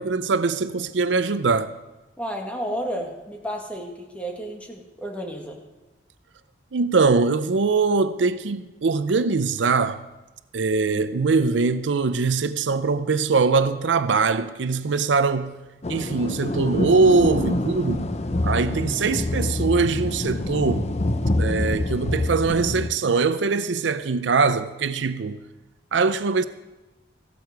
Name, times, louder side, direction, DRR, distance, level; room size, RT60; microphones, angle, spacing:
voice 1, 0.0-1.8 6.7-10.0 10.5-15.6 15.9-18.1 18.4-20.9 21.4-25.4 25.9-26.5, right 4 dB, 75° right, 0.6 m, -22 dB
voice 2, 2.2-5.6, equal, 5° left, 2.0 m, -32 dB
sound 1, 15.8-22.9, left 1 dB, 35° left, 0.8 m, -26 dB
15.0 x 12.5 x 4.7 m
head